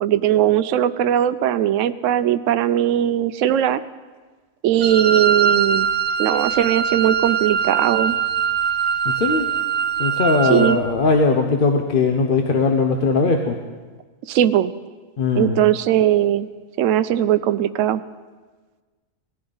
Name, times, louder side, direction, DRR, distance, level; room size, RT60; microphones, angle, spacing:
voice 1, 0.0-3.8 4.6-5.9 6.2-8.2 10.5-10.8 14.3-14.7 15.4-16.5 16.8-18.0, right 11 dB, 75° right, 13 dB, 0.9 m, -19 dB
Wind instrument woodwind instrument, 4.8-10.8, right 7 dB, 50° right, 0.5 m, -22 dB
voice 2, 9.0-9.5 10.0-13.6 15.2-15.6, left 4 dB, 45° left, 4 dB, 0.9 m, -19 dB
19.0 x 14.5 x 3.9 m, 1.4 s
omnidirectional pair, 1.4 m